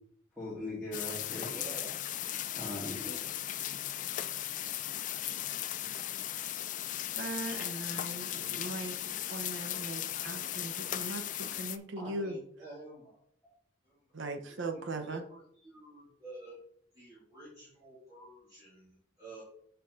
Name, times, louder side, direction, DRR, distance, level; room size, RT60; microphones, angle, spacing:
voice 1, 0.4-1.9 2.5-3.2, left 1 dB, 5° left, -10 dB, 1.9 m, -40 dB
sound 1, 0.9-11.8, left 12 dB, 40° left, 0.3 m, -37 dB
voice 2, 1.5-1.9 12.0-13.2 13.8-14.2 14.5-16.6 16.9-19.4, right 2 dB, 20° right, -9 dB, 2.2 m, -50 dB
voice 3, 7.2-12.4 14.1-15.2, right 2 dB, 65° right, 6 dB, 0.9 m, -39 dB
6.9 x 4.5 x 3.8 m, 0.66 s
head